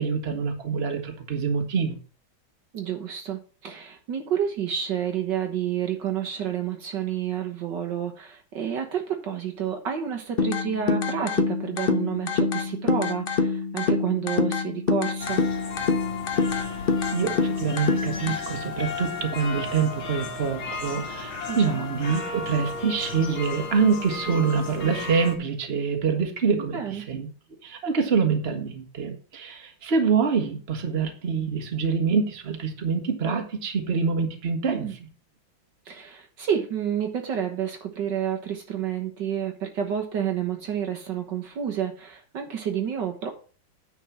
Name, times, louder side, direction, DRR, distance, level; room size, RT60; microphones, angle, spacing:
voice 1, 0.0-2.0 16.5-16.8 17.1-27.3 27.6-34.9, right 5 dB, 35° right, 5 dB, 1.6 m, -25 dB
voice 2, 2.7-15.4 21.5-21.9 26.6-27.1 34.7-34.9 35.9-43.3, right 9 dB, 65° right, 3 dB, 1.8 m, -29 dB
sound 1, 10.4-18.4, left 4 dB, 55° left, 0.6 m, -26 dB
sound 2, 15.2-25.4, left 4 dB, 80° left, 2.9 m, -34 dB
9.6 x 4.5 x 7.3 m, 0.39 s
omnidirectional pair, 2.2 m